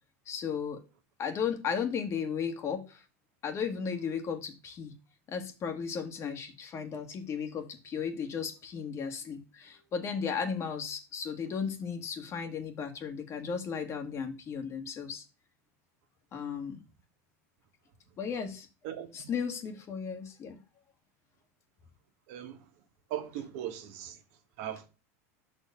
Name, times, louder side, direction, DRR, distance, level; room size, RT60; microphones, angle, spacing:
voice 1, 0.3-0.8 1.2-3.0 3.4-4.9 5.3-15.2 16.3-16.8 18.2-18.7 19.1-20.6, left 6 dB, 35° left, 1.5 m, -35 dB
voice 2, 18.8-19.3 22.3-22.6 23.1-24.2 24.6-24.9, right 11 dB, 65° right, 1.5 m, -39 dB
5.8 x 4.5 x 6.5 m
supercardioid pair, 115°, 8 cm